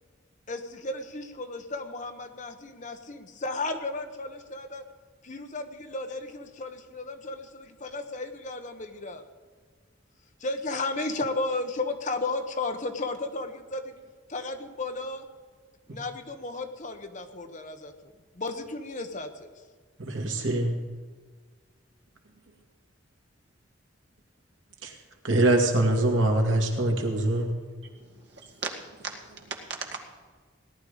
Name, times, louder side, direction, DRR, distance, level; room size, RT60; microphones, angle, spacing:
voice 1, 0.5-4.8 5.2-9.2 10.4-13.9 14.3-15.2 15.9-17.9 18.3-19.5, left 2 dB, 40° left, 7 dB, 1.1 m, -34 dB
voice 2, 20.0-20.8 24.8-24.9 25.2-27.5, right 2 dB, 80° right, 2 dB, 2.2 m, -23 dB
voice 3, 27.8-30.1, right 4 dB, 60° right, 2 dB, 1.9 m, -38 dB
18.0 x 11.5 x 5.1 m, 1.5 s
head